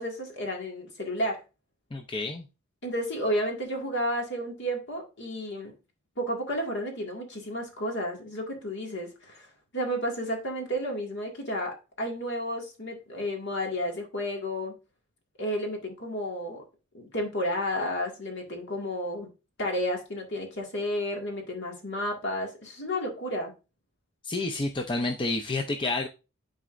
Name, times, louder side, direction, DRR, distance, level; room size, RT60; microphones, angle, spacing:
voice 1, 0.0-1.4 2.8-5.7 6.2-9.5 9.7-14.7 15.4-16.6 16.9-19.3 19.6-23.5, equal, 60° left, 1 dB, 1.9 m, -32 dB
voice 2, 1.9-2.4 24.2-26.1, left 2 dB, 25° left, 4 dB, 0.5 m, -29 dB
10.5 x 4.0 x 2.5 m, 0.30 s
head